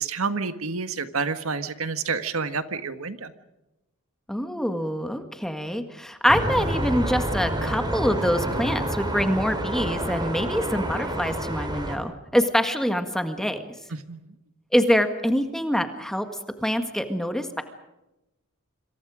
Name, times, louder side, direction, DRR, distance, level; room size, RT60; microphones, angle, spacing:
voice 1, 0.0-3.3 14.1-14.3, right 4 dB, 75° right, 10 dB, 1.6 m, -29 dB
voice 2, 4.3-13.6 14.7-16.3 16.6-17.6, equal, ahead, 7 dB, 1.7 m, -25 dB
sound 1, 6.3-12.0, right 1 dB, 20° right, 4.0 m, -28 dB
27.0 x 26.0 x 5.1 m, 0.95 s
head